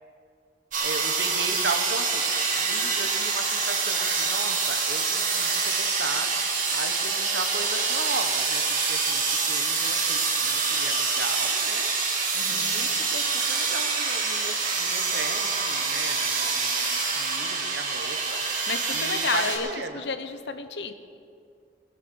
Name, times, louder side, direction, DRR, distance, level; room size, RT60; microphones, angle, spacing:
sound 1, 0.7-19.6, right 4 dB, 50° right, 2.2 m, -26 dB
voice 1, 0.8-11.9 12.5-20.0, right 3 dB, 65° right, 7 dB, 1.2 m, -36 dB
voice 2, 12.3-12.9 18.5-19.7 19.9-20.9, left 4 dB, 75° left, 10 dB, 0.9 m, -32 dB
20.5 x 8.1 x 6.4 m, 2.4 s
head